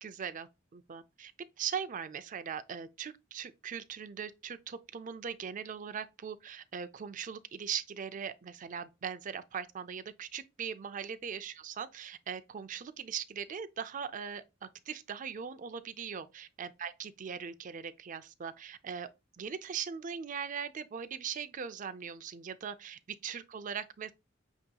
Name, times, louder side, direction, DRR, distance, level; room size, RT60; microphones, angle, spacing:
voice 1, 0.0-1.3 1.6-14.4 14.9-19.1 19.4-24.1, right 7 dB, 40° right, 0.4 m, -40 dB
8.0 x 2.9 x 2.2 m
head